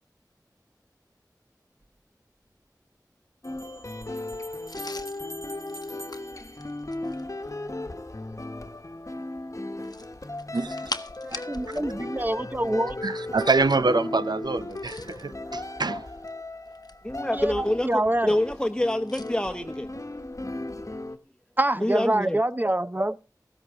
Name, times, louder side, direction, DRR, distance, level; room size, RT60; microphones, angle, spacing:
sound 1, 1.8-1.9 3.4-7.4, right 1 dB, 55° right, 1.7 m, -47 dB
sound 2, 3.4-21.2, left 2 dB, 50° left, 1.1 m, -36 dB
sound 3, 4.7-7.3 9.8-11.9 12.2-12.3 14.6-15.3 16.1-17.2 19.1-19.3, left 2 dB, 70° left, 0.9 m, -41 dB
voice 1, 10.5-10.9 13.0-16.1, right 3 dB, 80° right, 0.6 m, -25 dB
voice 2, 11.2-13.0 17.3-18.3 21.6-23.2, right 1 dB, 25° right, 0.7 m, -26 dB
voice 3, 17.0-19.9 21.8-22.4, left 1 dB, 10° left, 1.0 m, -26 dB
15.0 x 13.5 x 3.7 m
wide cardioid pair, 45°, 7 cm